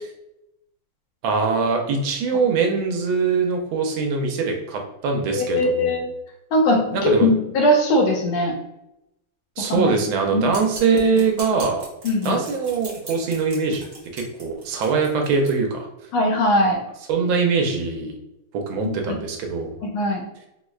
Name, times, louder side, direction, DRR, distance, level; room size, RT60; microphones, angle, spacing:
voice 1, 1.2-5.9 6.9-7.3 9.6-11.8 12.2-13.8 14.1-15.9 17.1-18.1 18.5-19.8, right 4 dB, 80° right, 2 dB, 1.3 m, -22 dB
voice 2, 5.3-6.1 6.5-8.5 9.6-9.9 10.3-10.5 12.0-12.4 16.1-16.8 18.8-18.9 19.9-20.2, left 1 dB, 80° left, 1 dB, 1.6 m, -20 dB
sound 1, 10.5-15.5, right 3 dB, 55° right, 0.8 m, -40 dB
4.7 x 2.0 x 2.3 m, 0.87 s
omnidirectional pair, 2.3 m